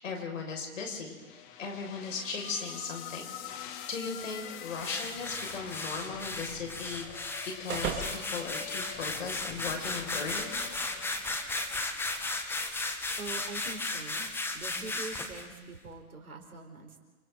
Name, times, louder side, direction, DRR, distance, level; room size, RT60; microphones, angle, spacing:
voice 1, 0.0-3.4 3.9-7.0 7.4-10.6, left 5 dB, 60° left, 1 dB, 6.1 m, -37 dB
sound 1, 1.1-12.4, left 10 dB, 35° left, 1.7 m, -46 dB
sound 2, 4.8-15.4, left 2 dB, 5° left, 1.3 m, -35 dB
sound 3, 5.1-9.5, right 7 dB, 25° right, 3.1 m, -42 dB
voice 2, 13.2-17.0, right 3 dB, 75° right, 2 dB, 4.6 m, -44 dB
29.0 x 27.5 x 4.0 m, 1.3 s
figure-of-eight pair, 115°, 44 cm